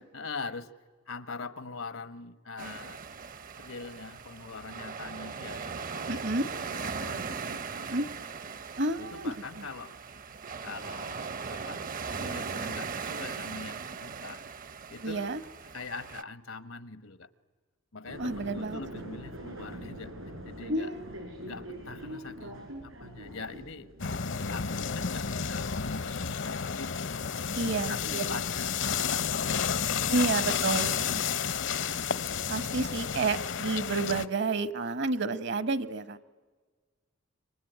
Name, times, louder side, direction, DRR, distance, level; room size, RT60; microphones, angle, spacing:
voice 1, 0.1-0.7 1.1-3.0 3.5-8.0 9.0-9.9 10.6-11.8 12.2-14.4 14.9-15.3 15.7-17.3 17.9-20.1 20.4-20.9 21.4-23.9 24.5-26.9 27.6-30.3 30.9-31.5, left 4 dB, 85° left, 14 dB, 1.3 m, -43 dB
sound 1, 2.6-16.2, right 5 dB, 45° right, 0.7 m, -39 dB
voice 2, 6.1-6.5 7.9-8.1 8.8-9.7 15.0-15.4 18.2-18.8 20.7-21.1 27.5-28.2 30.1-31.3 32.5-36.2, right 3 dB, 60° right, 14 dB, 1.2 m, -30 dB
London Underground Ambiance, 18.0-25.4, right 1 dB, 85° right, 7.8 m, -44 dB
sound 2, 24.0-34.3, left 7 dB, 65° left, 0.8 m, -31 dB
27.0 x 24.0 x 9.3 m, 1.4 s
head